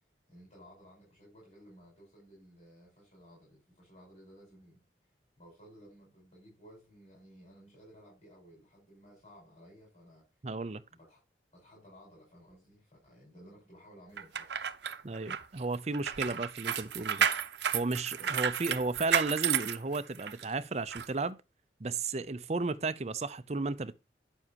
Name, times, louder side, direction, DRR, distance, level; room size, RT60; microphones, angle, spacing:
voice 1, 0.3-4.8 5.4-10.2 10.9-11.2 11.5-14.5 18.2-18.7, equal, 40° left, 5.9 m, -56 dB
voice 2, 10.4-10.8 15.0-17.3 17.7-21.4 21.8-23.9, right 3 dB, 40° right, 0.6 m, -34 dB
sound 1, 14.2-20.4 20.9-21.1, right 8 dB, 75° right, 0.7 m, -32 dB
9.7 x 7.2 x 2.9 m
head